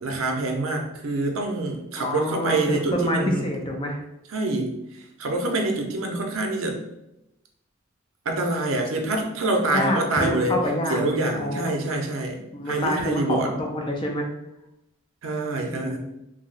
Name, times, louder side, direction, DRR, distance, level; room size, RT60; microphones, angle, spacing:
voice 1, 0.0-3.5 4.3-4.7 5.2-6.8 8.3-10.6 10.9-12.4 12.7-13.5 15.2-16.0, right 2 dB, 75° right, 3 dB, 0.5 m, -26 dB
voice 2, 2.0-4.0 9.7-11.0 11.4-12.0 12.5-14.3 15.7-16.0, left 1 dB, 25° left, 1 dB, 0.4 m, -27 dB
2.7 x 2.1 x 3.9 m, 0.87 s
head